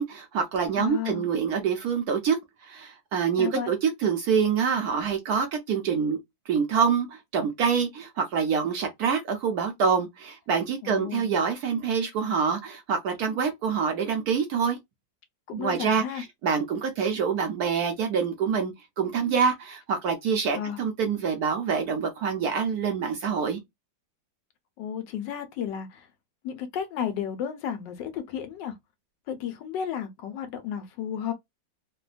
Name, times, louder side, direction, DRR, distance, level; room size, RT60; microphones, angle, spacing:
voice 1, 0.0-6.2 6.5-14.8 15.5-23.6, right 6 dB, 70° right, 0.9 m, -26 dB
voice 2, 0.8-1.2 3.4-3.7 10.8-11.3 15.6-16.2 20.5-20.8 24.8-26.1 26.4-28.8 29.3-31.3, left 8 dB, 75° left, 1.2 m, -33 dB
3.3 x 2.2 x 2.4 m
omnidirectional pair, 2.0 m